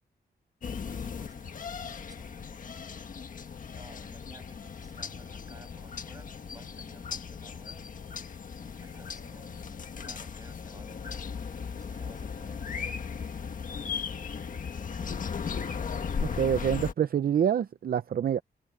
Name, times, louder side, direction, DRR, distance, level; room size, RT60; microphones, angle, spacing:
sound 1, 0.6-16.9, left 6 dB, 50° left, 1.5 m, -37 dB
voice 1, 1.0-2.8 3.8-7.9 8.5-11.3 11.7-13.0 13.7-14.3 14.8-15.5, right 3 dB, 20° right, 6.1 m, -56 dB
voice 2, 16.2-18.4, right 8 dB, 60° right, 0.6 m, -26 dB
open air
wide cardioid pair, 175°, 17 cm